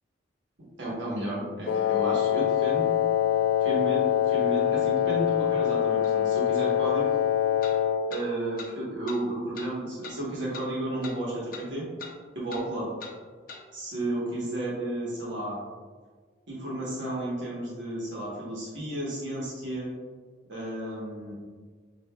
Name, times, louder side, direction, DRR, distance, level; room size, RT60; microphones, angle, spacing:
voice 1, 0.8-2.8 3.6-7.1 8.1-11.8 12.3-12.9 13.7-15.6 16.5-19.9 20.5-21.3, right 1 dB, 65° right, -5 dB, 1.2 m, -32 dB
Wind instrument woodwind instrument, 1.7-8.1, left 10 dB, 90° left, 0.3 m, -24 dB
sound 1, 6.0-6.1 7.6-7.8 8.1-8.2 8.6-8.7 9.1-9.2 9.5-9.7 10.0-10.2 10.5-10.7 11.0-11.2 11.5-11.7 12.0-12.1 12.5-12.6 13.0-13.1 13.5-13.6, left 5 dB, 45° left, 0.6 m, -41 dB
6.4 x 2.6 x 2.3 m, 1.5 s
head